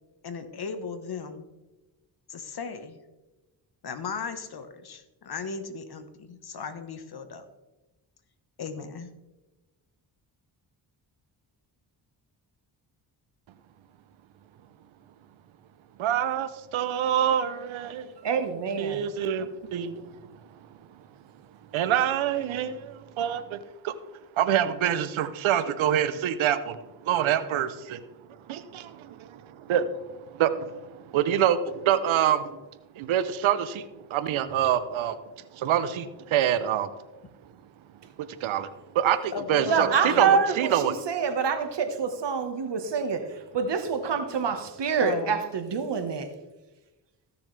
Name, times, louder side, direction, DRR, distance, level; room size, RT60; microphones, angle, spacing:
voice 1, 0.2-1.4 2.3-3.0 3.8-7.5 8.6-9.1 39.3-40.4 45.0-45.4, left 5 dB, 55° left, 1.3 m, -36 dB
voice 2, 16.0-18.2 18.8-20.4 21.7-23.9 24.4-28.0 28.3-32.6 32.9-36.9 38.2-38.7 38.9-40.9, right 10 dB, 90° right, 0.8 m, -26 dB
voice 3, 18.2-19.0 39.7-46.3, right 6 dB, 60° right, 1.5 m, -26 dB
15.0 x 6.9 x 3.3 m
cardioid pair, 65°, 46 cm